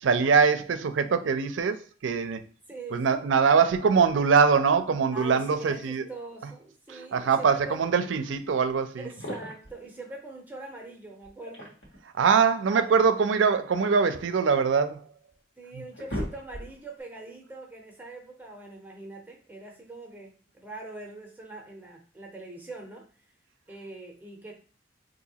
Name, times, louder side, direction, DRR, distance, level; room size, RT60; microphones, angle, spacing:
voice 1, 0.0-2.4 2.9-6.0 6.9-9.1 12.1-15.0, right 5 dB, 80° right, 0.4 m, -23 dB
voice 2, 2.7-3.3 5.1-7.9 9.0-11.8 12.7-13.0 15.6-23.0 23.7-24.5, right 2 dB, 10° right, 0.6 m, -42 dB
sound 1, 9.0-9.8 11.2-12.1 13.3-14.7 15.3-15.4 15.7-16.9, equal, 80° left, 1.3 m, -38 dB
3.9 x 2.6 x 2.8 m
head